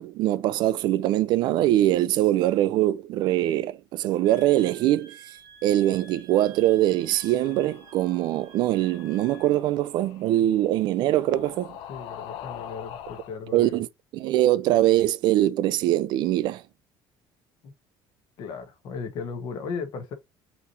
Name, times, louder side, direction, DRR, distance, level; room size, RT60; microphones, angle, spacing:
voice 1, 0.0-5.2 5.6-11.7 13.5-13.9 14.1-16.6, right 14 dB, 55° right, 0.4 m, -23 dB
Wind instrument woodwind instrument, 4.2-9.6, right 1 dB, 35° right, 1.0 m, -50 dB
sound 1, 6.6-13.4, left 10 dB, 85° left, 0.6 m, -44 dB
voice 2, 11.9-13.8 17.6-17.7 18.4-20.1, left 5 dB, 50° left, 1.2 m, -36 dB
5.8 x 3.1 x 2.6 m
cardioid pair, 180°, 9 cm